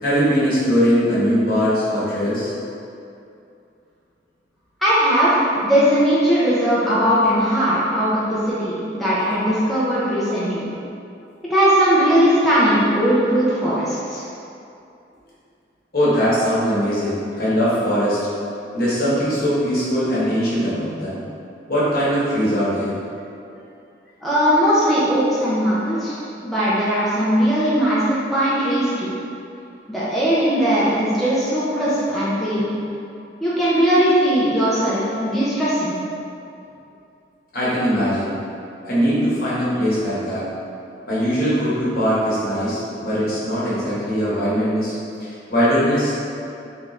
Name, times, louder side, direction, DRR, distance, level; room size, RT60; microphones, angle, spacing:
voice 1, 0.0-2.5 9.4-9.5 15.9-18.4 18.7-21.2 21.7-22.9 37.5-38.3 38.8-40.5 41.1-44.9 45.2-46.2, equal, 55° left, -10 dB, 1.1 m, -20 dB
voice 2, 4.8-10.7 11.5-14.3 24.2-29.1 29.9-32.7 33.4-36.0, equal, ahead, -11 dB, 0.5 m, -19 dB
3.4 x 2.5 x 3.1 m, 2.6 s
head